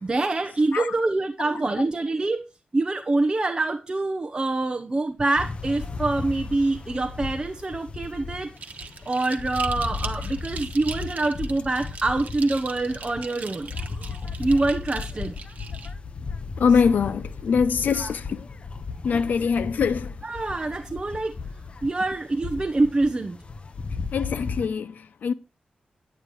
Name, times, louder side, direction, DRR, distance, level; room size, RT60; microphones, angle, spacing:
voice 1, 0.0-2.4 2.7-8.5 9.0-13.7 14.4-15.3 17.9-18.1 20.2-21.3 21.8-23.4, right 2 dB, 30° right, 1.0 m, -25 dB
sound 1, 5.4-24.7, left 4 dB, 40° left, 0.8 m, -35 dB
sound 2, 8.6-15.9, right 5 dB, 65° right, 1.4 m, -40 dB
sound 3, 12.0-15.4 16.4-18.0 18.7-19.0, right 1 dB, 10° left, 7.7 m, -54 dB
voice 2, 16.6-18.4 19.0-20.2 24.1-25.3, left 6 dB, 90° left, 0.9 m, -23 dB
10.5 x 9.5 x 4.7 m
wide cardioid pair, 135°, 3 cm